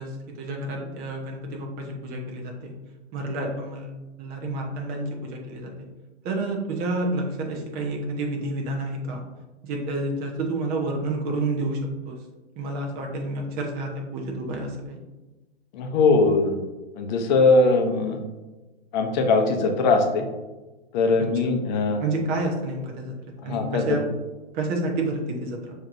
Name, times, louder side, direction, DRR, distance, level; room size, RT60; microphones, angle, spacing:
voice 1, 0.0-2.7 3.1-3.9 4.2-5.7 6.2-9.2 9.6-11.8 12.0-12.2 12.6-15.0 22.0-23.1 23.4-24.0 24.5-25.7, right 2 dB, 25° right, 1 dB, 0.9 m, -29 dB
voice 2, 15.7-16.6 17.0-18.2 18.9-20.3 20.9-22.0 23.4-24.0, left 3 dB, 40° left, 4 dB, 0.8 m, -21 dB
6.8 x 3.0 x 2.6 m, 1.1 s
hypercardioid pair, 125°, 33 cm